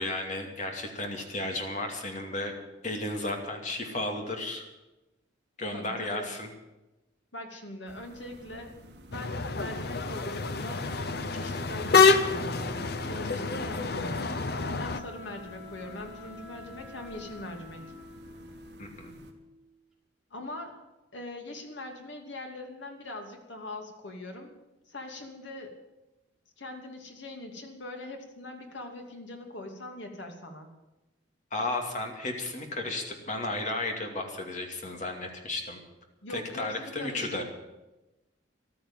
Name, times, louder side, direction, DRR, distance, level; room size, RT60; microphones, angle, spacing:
voice 1, 0.0-2.5 2.8-4.6 5.6-6.5 18.8-19.2 31.5-35.8 36.3-37.4, left 2 dB, 40° left, 3 dB, 2.6 m, -33 dB
voice 2, 5.7-6.3 7.3-8.7 9.1-10.9 11.1-14.2 14.8-17.8 20.3-20.8 21.1-24.5 24.9-25.7 26.6-30.7 36.2-37.4, left 1 dB, 75° left, 3 dB, 2.8 m, -42 dB
sound 1, 7.9-19.3, right 1 dB, 60° right, 2.2 m, -51 dB
sound 2, 9.1-15.0, left 4 dB, 55° left, 0.8 m, -27 dB
Wind instrument woodwind instrument, 10.9-19.7, left 3 dB, ahead, 3.3 m, -48 dB
14.5 x 12.5 x 7.4 m, 1.0 s
head